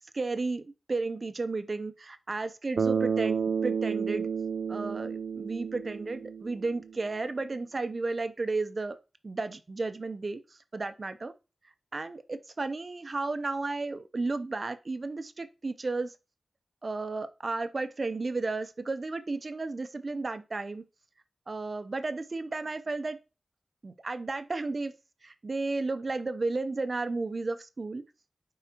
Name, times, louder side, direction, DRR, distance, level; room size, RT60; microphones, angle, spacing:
voice 1, 0.1-4.3 4.7-9.0 9.2-10.4 10.7-11.3 11.9-16.1 16.8-20.8 21.5-23.2 23.8-24.9 25.2-28.1, right 3 dB, 50° right, 0.7 m, -33 dB
Bass guitar, 2.8-7.0, right 6 dB, 85° right, 0.4 m, -31 dB
7.4 x 4.8 x 2.9 m
wide cardioid pair, 70°, 0 cm